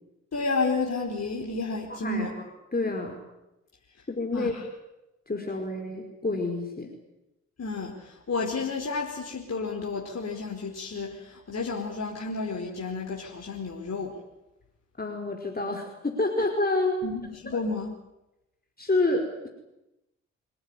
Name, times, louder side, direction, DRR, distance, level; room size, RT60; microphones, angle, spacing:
voice 1, 0.3-2.3 4.3-4.6 7.6-14.2 17.0-17.9, left 3 dB, 45° left, 0 dB, 4.8 m, -31 dB
voice 2, 2.7-3.2 4.1-4.5 5.3-6.9 15.0-17.0 17.5-17.6 18.8-19.5, left 2 dB, 25° left, 2 dB, 5.0 m, -28 dB
26.0 x 18.0 x 10.0 m, 0.94 s
hypercardioid pair, 40°, 37 cm